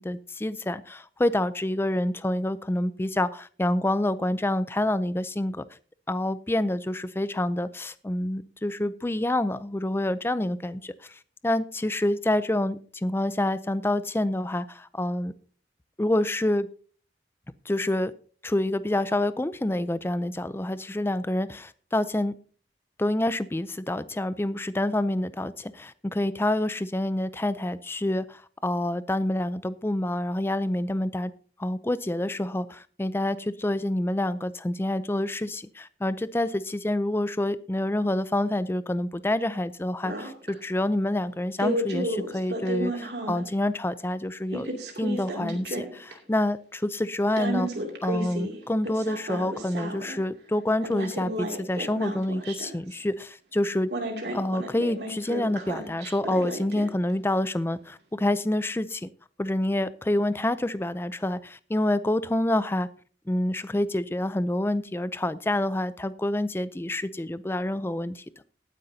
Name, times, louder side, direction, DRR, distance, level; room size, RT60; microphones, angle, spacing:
voice 1, 0.0-5.6 6.1-15.3 16.0-16.7 17.7-18.1 18.4-22.3 23.0-31.3 31.6-44.7 45.0-47.7 48.0-53.9 54.3-59.1 59.4-62.9 63.3-68.2, left 1 dB, 15° left, 15 dB, 0.4 m, -27 dB
sound 1, 40.0-40.5 41.6-43.5 44.5-46.1 47.4-50.2 50.8-52.9 53.9-57.1, right 1 dB, 70° right, 2.6 m, -32 dB
18.5 x 9.8 x 2.7 m, 0.42 s
head